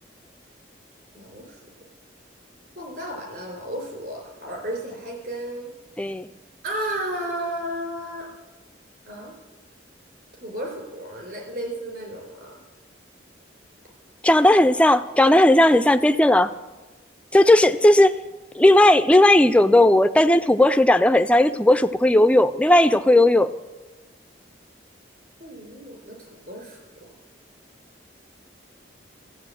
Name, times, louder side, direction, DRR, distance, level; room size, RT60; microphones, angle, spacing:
voice 1, 1.1-1.6 2.8-5.7 6.6-8.3 9.1-9.3 10.3-12.5 25.4-27.1, right 1 dB, 55° right, 1 dB, 4.2 m, -33 dB
voice 2, 6.0-6.3 14.2-16.5 17.3-18.1 18.6-23.5, left 1 dB, 5° left, 10 dB, 0.3 m, -16 dB
14.0 x 8.1 x 7.8 m, 1.2 s
head